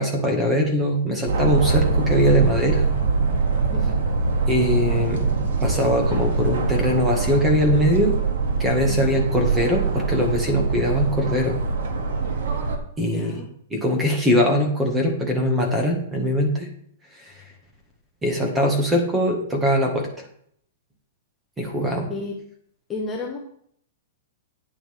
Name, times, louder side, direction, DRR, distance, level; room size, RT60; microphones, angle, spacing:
voice 1, 0.0-2.8 4.5-5.3 5.6-8.1 8.6-11.6 13.0-13.4 13.7-16.7 18.2-20.1 21.6-22.1, equal, 10° right, 2 dB, 1.9 m, -21 dB
sound 1, 1.3-12.8, right 4 dB, 75° right, 2.2 m, -23 dB
voice 2, 8.9-9.2 13.0-13.5 22.1-22.4 22.9-23.4, left 3 dB, 15° left, -2 dB, 1.2 m, -32 dB
10.0 x 9.2 x 3.6 m, 0.65 s
hypercardioid pair, 165°, 0 cm